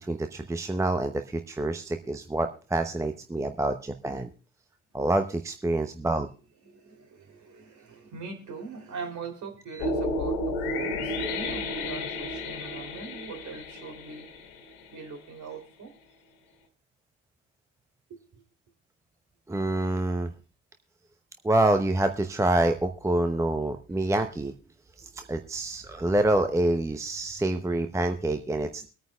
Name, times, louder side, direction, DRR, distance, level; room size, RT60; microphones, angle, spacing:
voice 1, 0.0-4.3 4.9-6.3 9.7-9.9 19.5-20.3 21.4-24.5 25.0-28.9, right 1 dB, 5° right, 0.7 m, -27 dB
voice 2, 6.6-14.3 14.9-15.9 18.1-18.4, right 4 dB, 45° right, 3.1 m, -41 dB
sound 1, 9.8-15.0, left 1 dB, 60° left, 1.9 m, -32 dB
23.5 x 9.2 x 2.3 m
figure-of-eight pair, 60°, 41 cm